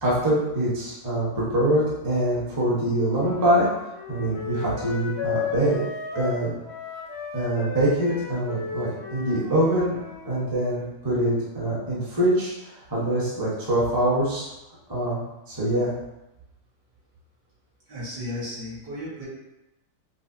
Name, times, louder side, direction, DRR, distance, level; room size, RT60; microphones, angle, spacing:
voice 1, 0.0-3.7 4.1-5.8 6.1-6.5 7.3-9.9 10.2-12.5 12.9-14.5 14.9-15.2 15.5-15.9, right 1 dB, 20° right, -8 dB, 0.6 m, -24 dB
Wind instrument woodwind instrument, 3.1-10.4, left 6 dB, 60° left, 0.7 m, -35 dB
voice 2, 17.9-19.3, left 1 dB, 65° right, -10 dB, 2.3 m, -34 dB
5.1 x 2.0 x 2.7 m, 0.95 s
omnidirectional pair, 1.9 m